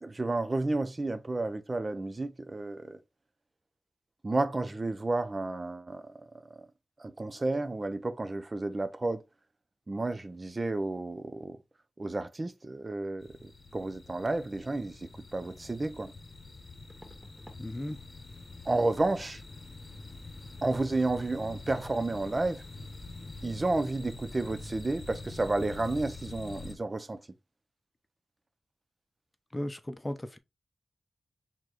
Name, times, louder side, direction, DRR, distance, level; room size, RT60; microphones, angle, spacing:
voice 1, 0.0-3.0 4.2-6.7 7.0-9.2 9.9-11.6 12.0-16.1 18.7-19.4 20.6-22.6 23.4-27.2, right 2 dB, 40° right, 0.6 m, -31 dB
sound 1, 13.2-26.8, left 3 dB, 55° left, 1.0 m, -46 dB
sound 2, 15.4-15.5 16.9-17.7 18.0-18.3 18.6-18.8 21.7-21.9 22.1-22.3 22.6-22.7, equal, 15° right, 2.1 m, -56 dB
voice 2, 17.6-18.0 29.5-30.4, left 1 dB, 25° left, 0.8 m, -36 dB
4.6 x 3.7 x 3.0 m
cardioid pair, 40°, 0 cm